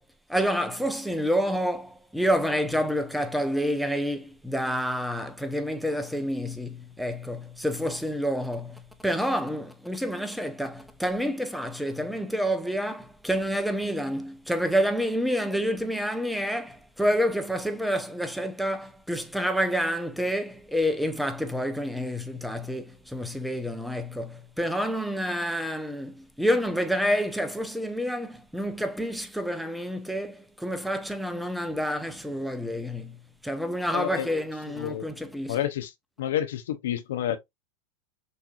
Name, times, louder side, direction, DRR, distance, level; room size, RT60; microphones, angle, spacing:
voice 1, 0.3-33.2 33.4-35.6, equal, ahead, 0.7 m, -28 dB
voice 2, 33.9-34.3 34.7-35.1 35.5-35.9 36.2-37.4, left 11 dB, 80° left, 0.7 m, -29 dB
6.3 x 2.7 x 2.4 m
hypercardioid pair, 105°, 0 cm